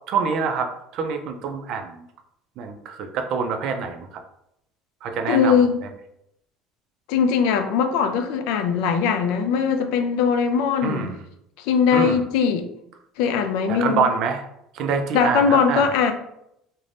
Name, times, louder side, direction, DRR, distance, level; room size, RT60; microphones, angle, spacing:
voice 1, 0.1-2.0 2.6-4.1 5.0-5.9 10.8-11.2 11.9-12.2 13.7-14.4 14.7-15.8, right 5 dB, 50° right, 5 dB, 0.4 m, -26 dB
voice 2, 5.3-5.8 7.1-11.1 11.6-12.7 13.2-14.1 15.1-16.1, left 6 dB, 70° left, 7 dB, 0.3 m, -20 dB
2.5 x 2.1 x 3.2 m, 0.78 s
cardioid pair, 155°, 0 cm